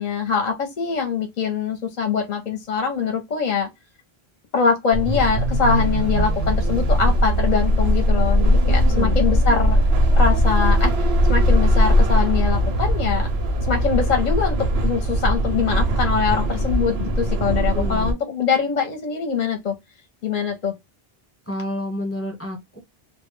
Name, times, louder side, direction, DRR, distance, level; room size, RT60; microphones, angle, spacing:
voice 1, 0.0-3.7 4.5-9.8 10.2-13.3 13.7-19.7 20.2-20.7, left 5 dB, 50° left, 0.6 m, -23 dB
sound 1, 4.9-18.1, equal, 80° right, 0.8 m, -19 dB
voice 2, 8.9-9.2 17.7-18.1 21.5-22.8, left 1 dB, 15° left, 0.8 m, -30 dB
2.1 x 2.0 x 3.0 m
omnidirectional pair, 1.0 m